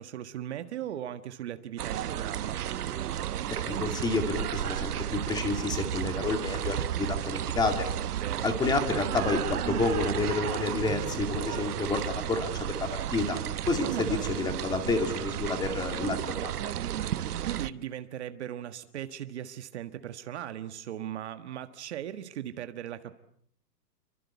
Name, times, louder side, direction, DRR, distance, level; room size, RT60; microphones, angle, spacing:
voice 1, 0.0-2.6 8.1-8.5 13.8-14.3 17.5-23.1, right 11 dB, 40° right, 10 dB, 1.5 m, -38 dB
sound 1, 1.8-17.7, right 11 dB, 65° right, 1.2 m, -33 dB
voice 2, 3.7-7.9 8.4-13.4 13.7-16.6, left 3 dB, 10° left, 6 dB, 2.2 m, -30 dB
29.5 x 24.0 x 8.3 m, 0.66 s
hypercardioid pair, 170°, 49 cm